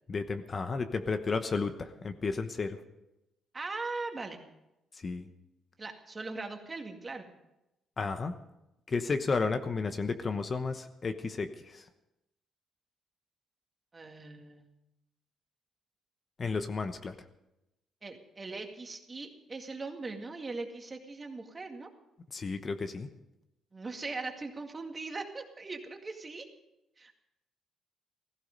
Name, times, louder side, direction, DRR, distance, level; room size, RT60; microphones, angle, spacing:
voice 1, 0.1-2.8 5.0-5.2 8.0-8.3 8.9-11.8 16.4-17.1 22.3-23.1, left 4 dB, 40° left, 9 dB, 1.0 m, -32 dB
voice 2, 3.5-4.4 5.8-7.3 13.9-14.7 18.0-21.9 23.7-26.5 27.0-27.1, right 3 dB, 30° right, 4 dB, 2.1 m, -40 dB
16.0 x 14.5 x 5.3 m, 0.91 s
cardioid pair, 90°, 0 cm